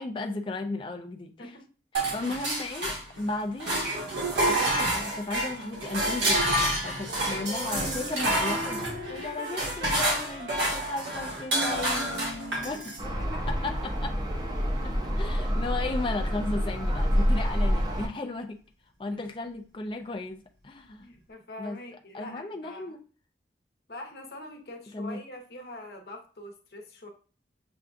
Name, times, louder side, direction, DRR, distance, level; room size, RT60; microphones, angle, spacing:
voice 1, 0.0-1.6 2.1-3.9 4.5-12.9 13.5-14.1 14.8-18.6 19.0-21.1 21.6-21.8 22.1-23.0 24.9-25.2, left 3 dB, 30° left, 3 dB, 0.4 m, -35 dB
sound 1, 1.9-3.3 3.6-13.0, right 1 dB, 85° right, 1.4 m, -28 dB
sound 2, 7.1-12.2, equal, 50° right, 0.9 m, -40 dB
voice 2, 12.5-13.5 14.4-15.2 19.1-19.2 21.0-22.9 23.9-27.1, left 1 dB, 65° left, 2 dB, 0.9 m, -45 dB
sound 3, 13.0-18.1, equal, 25° right, 0.6 m, -27 dB
6.9 x 2.3 x 2.5 m, 0.39 s
head